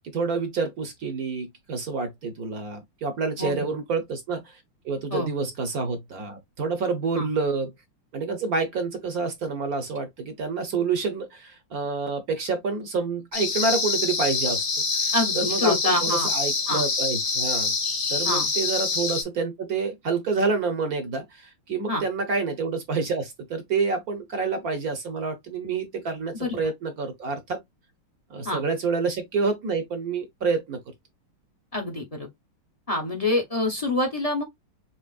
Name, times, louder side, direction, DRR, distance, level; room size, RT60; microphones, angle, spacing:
voice 1, 0.1-4.6 4.8-7.7 8.1-14.7 14.9-17.7 18.1-27.6 28.3-30.8, right 4 dB, 55° right, 1.1 m, -28 dB
voice 2, 3.4-3.7 5.1-5.3 7.1-7.3 15.1-16.3 16.7-16.8 18.2-18.5 21.9-22.0 26.3-26.7 28.4-28.6 31.7-32.3 32.9-34.4, left 2 dB, 25° left, 0.8 m, -26 dB
sound 1, 13.3-19.2, left 4 dB, 65° left, 2.3 m, -26 dB
6.1 x 2.9 x 2.4 m
omnidirectional pair, 2.3 m